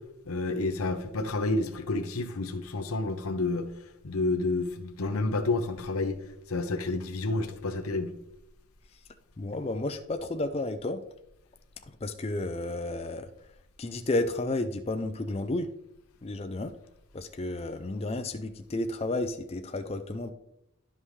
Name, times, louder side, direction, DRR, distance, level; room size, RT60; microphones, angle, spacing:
voice 1, 0.3-3.7 4.0-6.2 6.5-8.1, left 2 dB, 90° left, 0.8 m, -29 dB
voice 2, 9.4-11.0 12.0-13.3 13.8-15.7 16.2-16.7 17.1-20.3, left 2 dB, 30° left, 0.4 m, -32 dB
11.5 x 5.4 x 3.2 m
head